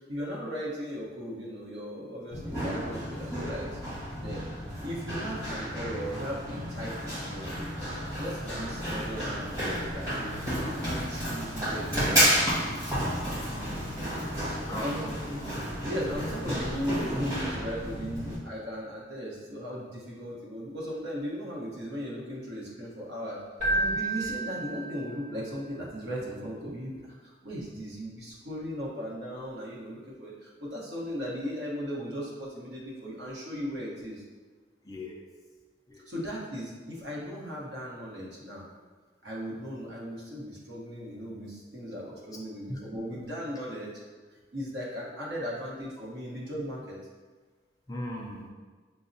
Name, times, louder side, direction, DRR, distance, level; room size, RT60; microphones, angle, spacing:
voice 1, 0.0-3.8 4.1-4.4 4.8-7.7 8.0-12.5 14.5-15.4 15.8-23.4 23.7-34.2 36.1-38.7 39.2-44.0 44.5-47.0, equal, 70° right, -5 dB, 1.0 m, -37 dB
Run, 2.3-18.4, equal, 20° right, 1.2 m, -31 dB
voice 2, 13.5-13.9 14.3-15.1 34.8-35.2 35.9-36.0 42.7-42.8 47.9-48.5, left 1 dB, 20° left, -1 dB, 0.4 m, -39 dB
Keyboard (musical), 23.6-25.4, right 2 dB, 45° right, 1.2 m, -30 dB
6.0 x 2.0 x 2.6 m, 1.4 s
head